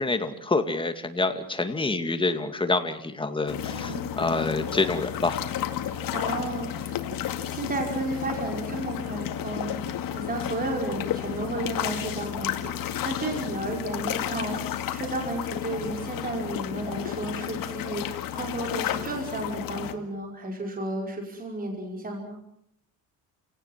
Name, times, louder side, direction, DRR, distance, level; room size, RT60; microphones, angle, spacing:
voice 1, 0.0-5.4, left 3 dB, 15° left, 8 dB, 2.2 m, -27 dB
sound 1, 3.5-19.9, left 10 dB, 70° left, 2.3 m, -32 dB
voice 2, 3.7-4.1 5.9-7.0 7.5-14.6 14.9-22.4, right 2 dB, 25° right, 1 dB, 5.4 m, -33 dB
29.5 x 18.0 x 7.5 m, 0.72 s
cardioid pair, 130°, 35 cm